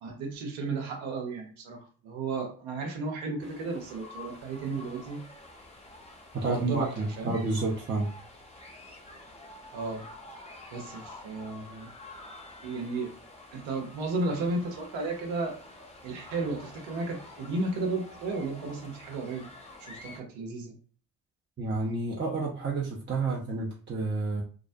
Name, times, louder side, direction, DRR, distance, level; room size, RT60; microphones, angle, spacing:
voice 1, 0.0-5.3 6.4-6.9 7.2-7.3 9.7-10.0 10.7-11.9 12.6-13.1 13.5-15.6 16.0-19.5 19.8-20.8, right 3 dB, 80° right, 2 dB, 0.8 m, -33 dB
sound 1, 3.4-20.2, left 2 dB, 15° left, 0.7 m, -49 dB
voice 2, 6.3-8.1 21.6-24.4, right 3 dB, 25° right, -4 dB, 0.7 m, -30 dB
2.4 x 2.0 x 2.5 m, 0.41 s
hypercardioid pair, 40°, 45 cm